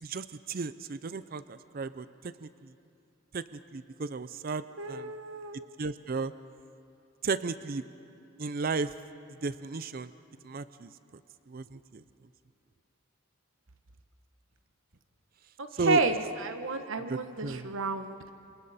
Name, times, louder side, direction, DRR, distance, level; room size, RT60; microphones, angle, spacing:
voice 1, 0.0-2.1 2.4-2.5 3.3-3.4 3.7-5.1 5.8-6.3 7.2-7.8 8.4-8.9 9.4-10.1 10.4-10.9 11.5-12.0 15.8-16.0 17.1-17.7, right 4 dB, 40° right, 14 dB, 0.5 m, -34 dB
voice 2, 4.8-5.7 15.6-18.3, right 3 dB, 65° right, 7 dB, 1.2 m, -31 dB
28.0 x 24.5 x 4.2 m, 2.7 s
head